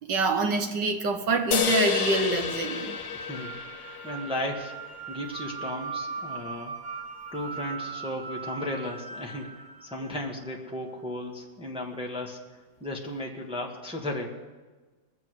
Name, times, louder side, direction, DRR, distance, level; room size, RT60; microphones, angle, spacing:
voice 1, 0.0-3.0, right 3 dB, 65° right, 6 dB, 1.7 m, -26 dB
sound 1, 1.3-10.5, right 4 dB, 40° right, 1.0 m, -40 dB
sound 2, 1.5-5.0, left 8 dB, 60° left, 1.6 m, -30 dB
voice 2, 3.1-3.5 4.0-4.8 5.1-6.7 7.3-12.4 12.8-14.3, left 1 dB, 5° right, -1 dB, 1.4 m, -35 dB
21.5 x 7.5 x 6.4 m, 1.3 s
omnidirectional pair, 2.1 m